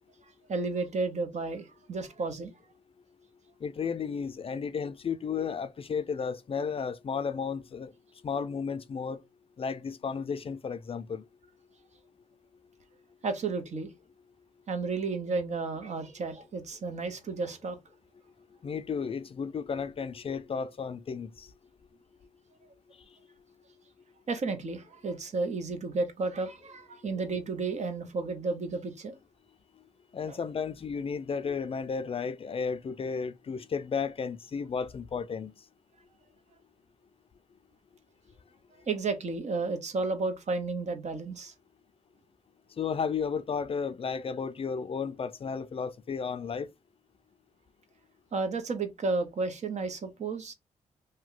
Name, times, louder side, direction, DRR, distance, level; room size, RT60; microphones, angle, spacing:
voice 1, 0.5-2.5 13.2-13.9 14.7-17.8 24.3-29.1 30.3-30.4 38.9-41.5 48.3-50.5, right 3 dB, 55° right, 0.9 m, -32 dB
voice 2, 3.6-7.9 8.2-9.2 9.6-11.2 18.6-21.5 30.1-35.5 42.8-46.7, left 6 dB, 40° left, 0.4 m, -33 dB
2.8 x 2.2 x 3.7 m
cardioid pair, 65°, 14 cm